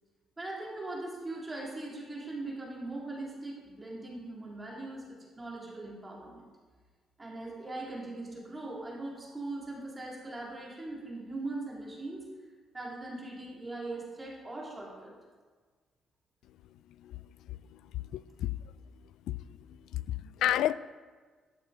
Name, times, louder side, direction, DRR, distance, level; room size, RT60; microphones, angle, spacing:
voice 1, 0.4-6.5 7.2-12.2 12.7-15.1, right 2 dB, 20° right, -4 dB, 3.4 m, -40 dB
voice 2, 17.0-18.6 19.3-20.7, left 13 dB, 85° left, 18 dB, 0.3 m, -33 dB
12.5 x 6.7 x 4.9 m, 1.5 s
cardioid pair, 90°, 0 cm